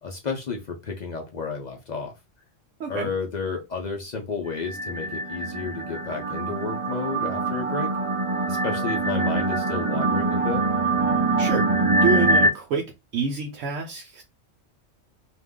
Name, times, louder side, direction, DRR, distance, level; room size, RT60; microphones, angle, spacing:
voice 1, 0.0-2.1 2.9-7.9 8.5-10.6, left 4 dB, 50° left, 0.5 m, -31 dB
voice 2, 2.8-3.1 11.4-12.9 13.1-14.2, right 5 dB, 80° right, 1.0 m, -28 dB
sound 1, 4.6-12.5, right 2 dB, 45° right, 0.4 m, -24 dB
2.5 x 2.2 x 3.5 m
omnidirectional pair, 1.3 m